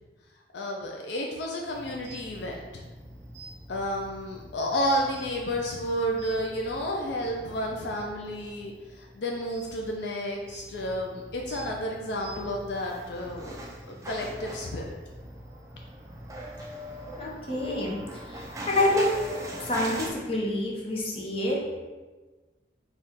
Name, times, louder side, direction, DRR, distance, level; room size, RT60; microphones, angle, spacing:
voice 1, 0.5-2.8 3.7-14.8, equal, 70° left, 0 dB, 0.4 m, -31 dB
sound 1, 1.7-20.1, right 1 dB, 20° right, 0.5 m, -42 dB
voice 2, 17.2-19.2 19.6-21.6, left 1 dB, 35° left, -3 dB, 0.7 m, -27 dB
4.1 x 2.4 x 3.6 m, 1.3 s
head